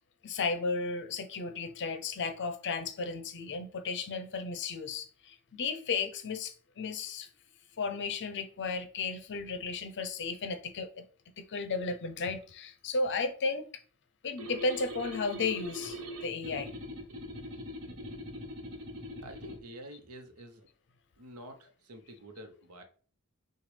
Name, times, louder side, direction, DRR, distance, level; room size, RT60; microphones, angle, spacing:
voice 1, 0.2-7.3 7.8-11.0 11.4-13.7 14.2-16.7, left 4 dB, 55° left, 0.6 m, -34 dB
sound 1, 14.4-19.6, equal, 70° right, 1.1 m, -42 dB
voice 2, 19.2-20.7 21.2-22.8, right 1 dB, 85° right, 0.9 m, -48 dB
6.0 x 2.3 x 3.3 m
head